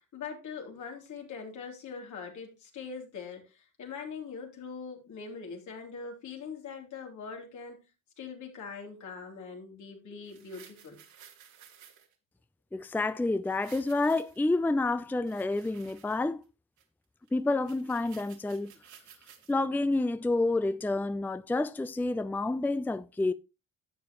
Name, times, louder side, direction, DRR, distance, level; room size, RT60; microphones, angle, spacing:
voice 1, 0.0-7.8 8.2-11.0, left 5 dB, 75° left, 3.3 m, -42 dB
sound 1, 10.2-12.1 13.4-14.5 15.0-16.4 16.8-16.9 17.3-17.4 17.6-19.5 20.0-20.1, right 8 dB, 75° right, 2.2 m, -55 dB
voice 2, 12.7-16.4 17.3-18.7 19.5-23.3, left 2 dB, 5° left, 0.5 m, -29 dB
11.5 x 7.4 x 3.0 m
cardioid pair, 90°, 30 cm